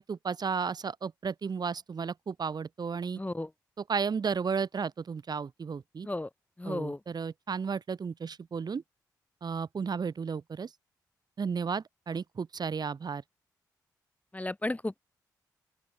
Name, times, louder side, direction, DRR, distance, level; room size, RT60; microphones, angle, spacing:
voice 1, 0.0-3.2 3.8-6.1 6.6-8.8 9.4-10.7 11.4-13.2, right 5 dB, 55° right, 7.8 m, -33 dB
voice 2, 3.2-3.5 6.1-6.3 6.6-7.0 14.3-15.0, left 2 dB, 20° left, 2.5 m, -33 dB
open air
supercardioid pair, 45°, 8 cm